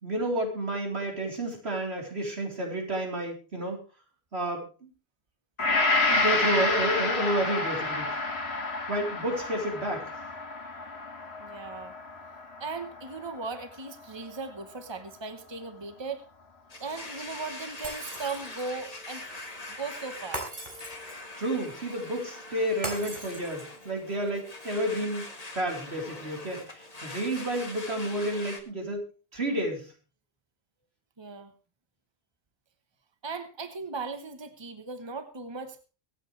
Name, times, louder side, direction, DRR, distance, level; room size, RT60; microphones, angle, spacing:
voice 1, 0.0-3.8 4.3-4.9 5.9-8.1 8.9-10.1 21.3-29.0 29.3-29.9, right 1 dB, 85° right, 0 dB, 4.2 m, -31 dB
Gong, 5.6-13.9 14.4-14.5, left 2 dB, 80° left, 2.1 m, -29 dB
voice 2, 11.4-11.9 12.6-16.2 16.8-19.3 19.7-20.5 31.2-31.5 33.2-35.8, right 4 dB, 25° right, 8 dB, 1.2 m, -38 dB
Domestic sounds home sounds, 16.7-28.6, left 2 dB, 35° left, 2.1 m, -43 dB
Shatter, 17.8-18.8 20.3-21.3 22.8-23.8, right 1 dB, 50° right, 4.1 m, -39 dB
24.0 x 9.1 x 3.3 m, 0.35 s
omnidirectional pair, 1.1 m